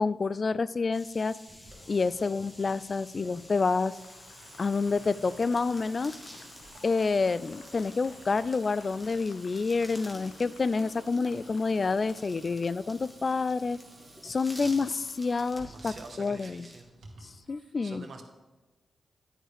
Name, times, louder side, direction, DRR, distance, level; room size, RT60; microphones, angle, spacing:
voice 1, 0.0-1.3 1.9-4.0 4.6-6.1 6.8-13.8 14.2-16.7 17.2-18.1, left 4 dB, 50° left, 18 dB, 0.3 m, -28 dB
sound 1, 0.9-16.8, left 1 dB, 25° left, 2.2 m, -51 dB
Water tap faucet / Sink (filling or washing) / Drip, 1.5-17.4, right 2 dB, 90° right, 1.7 m, -54 dB
Applause, 1.6-16.0, left 6 dB, 85° left, 0.6 m, -57 dB
voice 2, 15.6-16.9 17.5-18.2, right 4 dB, 65° right, 5 dB, 1.3 m, -47 dB
10.0 x 9.7 x 3.4 m, 1.2 s
cardioid pair, 50°, 0 cm